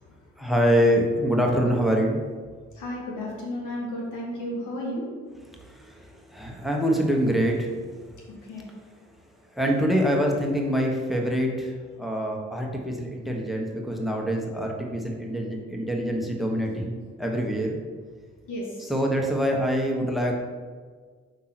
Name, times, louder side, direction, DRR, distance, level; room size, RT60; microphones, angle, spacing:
voice 1, 0.4-2.2 5.6-7.9 9.5-17.8 18.8-20.3, equal, ahead, 0 dB, 1.4 m, -25 dB
voice 2, 2.8-5.1 8.5-8.6 18.5-18.9, left 1 dB, 75° left, -3 dB, 1.8 m, -33 dB
5.6 x 3.7 x 6.0 m, 1.5 s
supercardioid pair, 50°, 31 cm